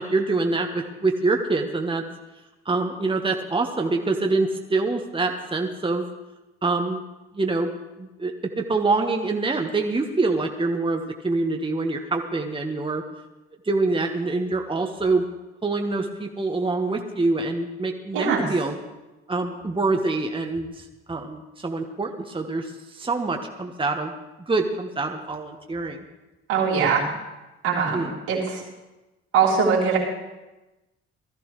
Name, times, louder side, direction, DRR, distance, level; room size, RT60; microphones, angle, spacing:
voice 1, 0.0-2.0 2.6-6.1 6.6-7.0 7.3-7.7 8.0-13.0 13.6-15.3 15.6-18.8 19.3-24.1 24.5-26.0 27.7-28.1, right 3 dB, 15° right, 3 dB, 1.2 m, -25 dB
voice 2, 18.1-18.5 26.5-27.1 27.6-28.4 29.3-30.0, right 6 dB, 75° right, -6 dB, 3.4 m, -21 dB
18.5 x 13.5 x 3.2 m, 1.1 s
hypercardioid pair, 50°, 31 cm